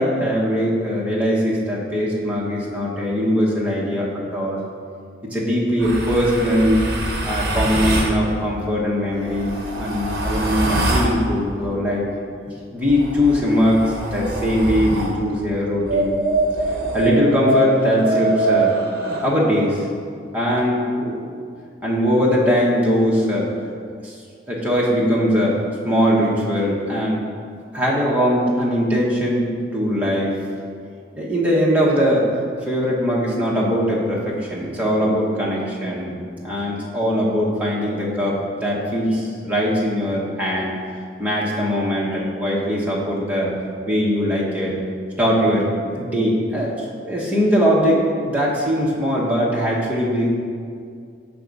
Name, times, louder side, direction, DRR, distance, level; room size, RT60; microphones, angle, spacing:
voice 1, 0.0-4.1 4.3-4.6 5.3-6.8 7.2-12.0 12.4-16.1 16.9-18.7 19.2-19.8 20.3-21.1 21.8-23.5 24.0-24.2 24.5-25.6 25.8-27.2 27.7-30.3 31.1-32.2 32.7-36.2 36.4-40.7 41.2-43.5 43.9-44.8 45.2-50.3, equal, 10° right, -5 dB, 1.0 m, -20 dB
sound 1, 5.8-8.2 9.1-11.2 12.8-15.2 15.8-19.3, right 2 dB, 55° right, 0.8 m, -23 dB
6.3 x 3.5 x 5.2 m, 2.3 s
head